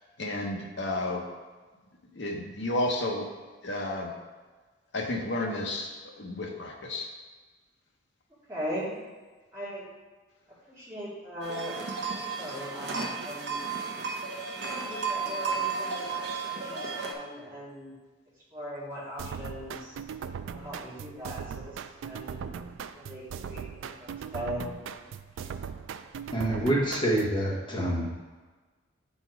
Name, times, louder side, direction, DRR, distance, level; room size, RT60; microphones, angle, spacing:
voice 1, 0.2-1.2 2.1-3.3 3.6-4.1 4.9-7.1, left 1 dB, 60° left, 1 dB, 0.9 m, -32 dB
voice 2, 8.5-8.9 9.5-9.9 10.7-11.8 12.1-13.5 14.6-18.0 18.5-20.0 20.5-22.5 22.9-24.7, equal, 15° right, -9 dB, 2.0 m, -39 dB
sound 1, 11.4-17.1, right 5 dB, 55° right, 0.7 m, -33 dB
sound 2, 19.2-27.4, right 7 dB, 75° right, 0.3 m, -39 dB
voice 3, 26.3-28.1, right 1 dB, 25° left, -4 dB, 1.1 m, -26 dB
6.0 x 4.3 x 4.6 m, 1.4 s
head